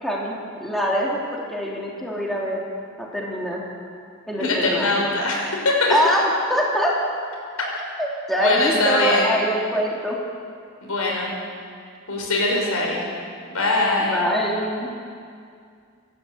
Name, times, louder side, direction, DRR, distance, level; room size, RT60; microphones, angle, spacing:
voice 1, 0.0-2.6 3.0-3.6 4.3-4.9 5.9-6.2 6.5-6.9 8.0-10.2 14.0-14.9, equal, ahead, -4 dB, 3.0 m, -24 dB
voice 2, 4.4-5.9 8.4-9.3 10.8-11.3 12.1-13.0 13.5-14.2, left 2 dB, 80° left, -1 dB, 5.8 m, -22 dB
28.5 x 12.5 x 8.5 m, 2.3 s
head